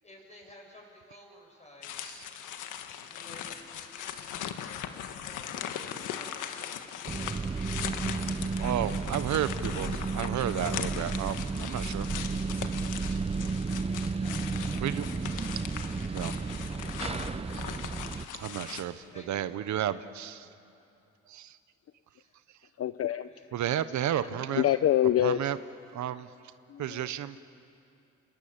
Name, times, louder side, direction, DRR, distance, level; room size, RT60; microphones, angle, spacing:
voice 1, 0.0-2.2 3.1-5.7 6.1-8.0 13.6-15.2 18.9-20.0 22.2-22.4 23.2-23.5 23.9-24.5, left 1 dB, 20° left, 0 dB, 7.8 m, -54 dB
sound 1, 1.8-18.8, left 9 dB, 85° left, 1.5 m, -39 dB
voice 2, 2.0-2.5 7.1-7.2 8.6-12.3 12.5-12.7 13.1-13.2 13.5-14.0 14.8-15.6 15.9-16.8 17.5-20.5 21.3-21.6 23.5-24.7 25.2-25.6 25.9-26.3 26.8-27.4, right 11 dB, 70° right, 13 dB, 0.9 m, -33 dB
sound 2, 7.0-18.3, right 4 dB, 20° right, 0.7 m, -33 dB
voice 3, 22.8-23.3 24.2-25.4 26.7-27.1, left 11 dB, 50° left, 12 dB, 0.7 m, -26 dB
28.5 x 21.5 x 8.8 m, 2.5 s
cardioid pair, 90°, 30 cm